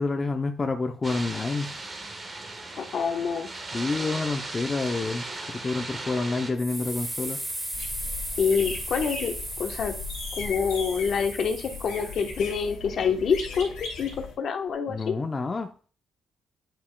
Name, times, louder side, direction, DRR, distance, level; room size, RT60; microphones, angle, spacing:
voice 1, 0.0-1.7 3.7-7.4 14.9-15.9, left 3 dB, 30° left, 5 dB, 0.6 m, -29 dB
sound 1, 1.0-6.5, right 2 dB, 30° right, 1.3 m, -37 dB
voice 2, 2.8-3.5 8.4-9.3 9.6-9.9 10.4-15.2, left 6 dB, 60° left, 5 dB, 1.0 m, -27 dB
sound 2, 6.6-12.7, right 1 dB, 10° right, 1.2 m, -36 dB
sound 3, 7.7-14.3, left 4 dB, 90° left, 2.3 m, -38 dB
8.7 x 5.6 x 2.2 m, 0.39 s
cardioid pair, 90°, 0 cm